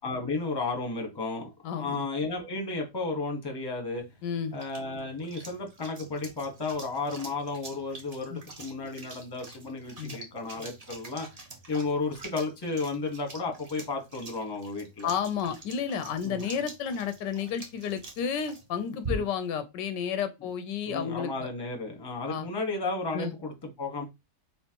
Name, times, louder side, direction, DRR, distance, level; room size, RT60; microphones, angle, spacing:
voice 1, 0.0-4.0 4.5-11.3 11.7-15.1 16.2-16.4 19.1-19.2 20.9-24.0, left 3 dB, 15° left, 1.1 m, -33 dB
voice 2, 1.6-2.0 4.2-4.6 8.3-8.4 10.0-10.2 15.0-21.5 22.3-22.5 23.1-23.3, left 7 dB, 85° left, 1.3 m, -32 dB
sound 1, 4.0-19.5, right 2 dB, 30° right, 0.7 m, -45 dB
4.3 x 3.8 x 2.9 m
omnidirectional pair, 1.9 m